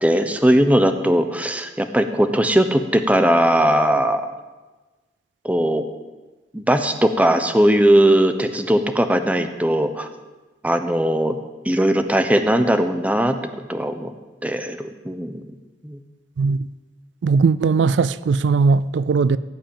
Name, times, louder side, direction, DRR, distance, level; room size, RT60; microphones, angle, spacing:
voice 1, 0.0-4.3 5.4-5.8 6.5-10.1 10.6-11.4 11.6-13.4 13.7-14.1 14.4-15.4 15.8-16.0, right 1 dB, 10° right, 0.8 m, -19 dB
voice 2, 17.2-19.4, right 4 dB, 80° right, 0.4 m, -18 dB
16.5 x 5.5 x 8.9 m
head